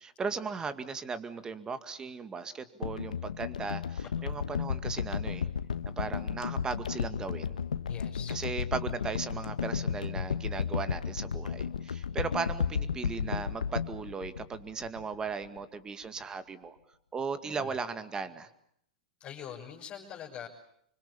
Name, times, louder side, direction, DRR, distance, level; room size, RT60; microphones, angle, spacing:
voice 1, 0.0-5.5 6.0-7.6 8.3-16.8 17.1-18.5, right 5 dB, 20° right, 11 dB, 2.1 m, -37 dB
sound 1, 2.8-15.1 15.5-15.6, left 7 dB, 90° left, 1.2 m, -33 dB
voice 2, 7.9-8.4 17.4-17.8 19.2-20.5, left 9 dB, 35° left, -2 dB, 6.1 m, -44 dB
25.5 x 24.5 x 8.6 m, 0.71 s
hypercardioid pair, 120°, 4 cm